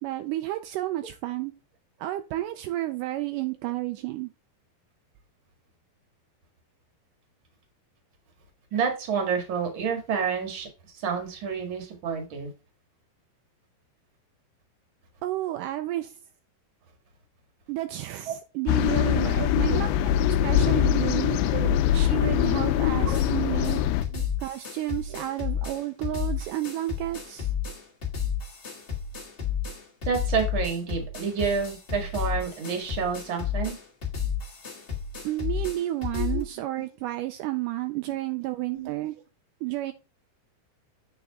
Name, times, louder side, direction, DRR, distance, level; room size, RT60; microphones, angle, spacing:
voice 1, 0.0-1.5 2.0-4.3 15.2-16.2 17.7-19.9 20.4-21.4 21.9-23.8 24.4-27.5 35.2-39.1 39.6-39.9, right 15 dB, 85° right, 1.9 m, -31 dB
voice 2, 8.7-10.7 10.9-12.5 18.3-18.4 19.1-19.8 21.5-21.8 22.9-23.2 23.4-23.6 24.0-24.2 30.1-33.7 36.1-36.4 38.7-38.9, right 6 dB, 45° right, 2.0 m, -29 dB
sound 1, 18.7-24.0, left 11 dB, 80° left, 2.2 m, -23 dB
sound 2, 23.0-23.3 23.6-23.8 24.0-36.4, left 8 dB, 55° left, 0.6 m, -32 dB
7.9 x 4.7 x 3.5 m
omnidirectional pair, 4.3 m